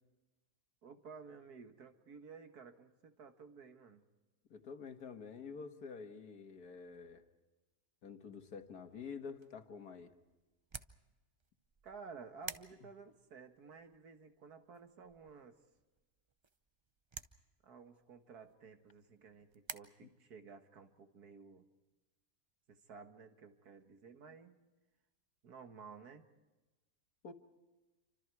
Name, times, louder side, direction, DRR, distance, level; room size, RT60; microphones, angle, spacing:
voice 1, 0.8-4.0 11.8-15.6 17.6-21.7 22.7-24.6 25.4-26.2, right 5 dB, 80° right, 7 dB, 2.1 m, -54 dB
voice 2, 4.5-7.2 8.0-10.1 20.0-20.1 27.2-27.3, left 5 dB, 80° left, 7 dB, 2.1 m, -48 dB
sound 1, 9.3-19.8, right 4 dB, 40° right, 0.4 m, -54 dB
28.5 x 25.5 x 4.8 m, 1.1 s
omnidirectional pair, 1.6 m